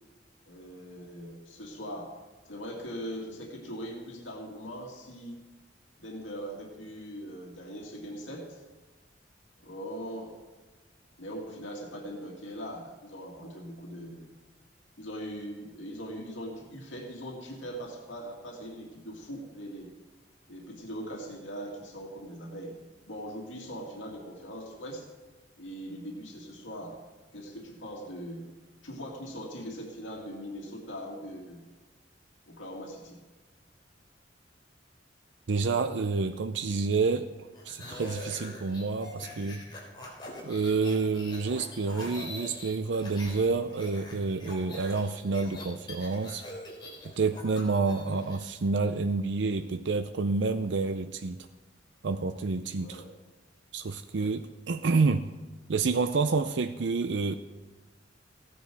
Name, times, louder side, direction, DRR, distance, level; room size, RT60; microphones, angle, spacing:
voice 1, 0.5-2.1 2.5-5.4 6.0-8.6 9.6-10.4 11.2-14.3 15.0-19.9 20.5-22.8 23.1-25.0 25.6-27.0 27.3-28.5 28.8-31.6 32.5-33.2 52.8-53.1 54.2-54.3, equal, 85° left, -1 dB, 2.2 m, -41 dB
voice 2, 35.5-37.3 37.6-39.6 40.4-46.4 47.2-51.5 52.0-53.0 53.7-55.3 55.7-57.3, right 4 dB, 70° right, 9 dB, 0.5 m, -28 dB
sound 1, 37.5-43.4 43.7-48.4, left 1 dB, 25° left, 3.6 m, -44 dB
15.5 x 9.9 x 4.6 m, 1.2 s
head